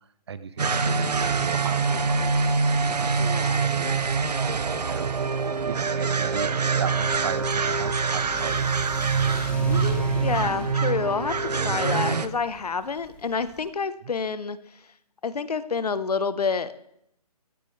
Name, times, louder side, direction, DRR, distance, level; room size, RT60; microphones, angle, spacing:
voice 1, 0.3-2.5 2.9-3.1 3.6-4.1 4.8-5.1 5.6-8.7 9.0-9.4, right 7 dB, 40° right, 14 dB, 0.9 m, -36 dB
sound 1, 0.6-12.3, right 5 dB, 80° right, 1.1 m, -25 dB
voice 2, 3.2-3.7 9.6-14.6 15.2-16.8, left 5 dB, 70° left, 14 dB, 1.2 m, -28 dB
Car / Accelerating revving vroom, 7.0-13.7, left 3 dB, 5° left, 1.1 m, -39 dB
15.5 x 13.5 x 3.4 m, 0.73 s
hypercardioid pair, 155°, 20 cm